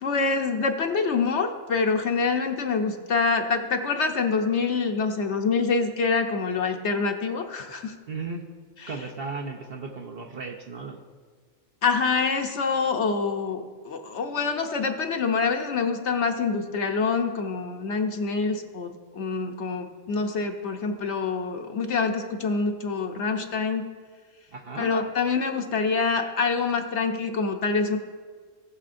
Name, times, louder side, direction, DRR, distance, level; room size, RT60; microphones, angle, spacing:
voice 1, 0.0-8.0 11.8-23.9 24.8-28.0, left 4 dB, 60° left, 5 dB, 0.9 m, -26 dB
voice 2, 8.1-8.4 8.9-11.0 24.5-24.9, right 4 dB, 55° right, 2 dB, 0.8 m, -35 dB
18.0 x 6.3 x 2.5 m, 1.5 s
omnidirectional pair, 1.4 m